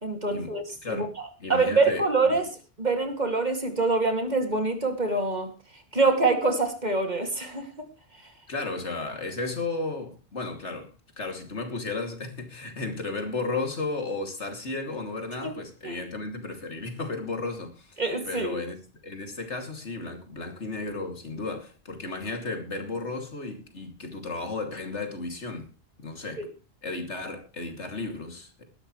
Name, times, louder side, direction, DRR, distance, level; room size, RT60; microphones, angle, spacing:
voice 1, 0.0-1.1 1.5-2.5 2.8-5.5 5.9-7.9 15.4-15.5 15.8-16.0 18.0-18.6 26.4-26.5, right 3 dB, 40° right, 2.7 m, -25 dB
voice 2, 0.8-1.1 1.4-2.4 8.5-10.9 11.2-18.8 19.0-25.7 26.0-26.5 26.8-28.6, left 3 dB, 85° left, 3.1 m, -34 dB
20.0 x 12.0 x 3.2 m
omnidirectional pair, 1.1 m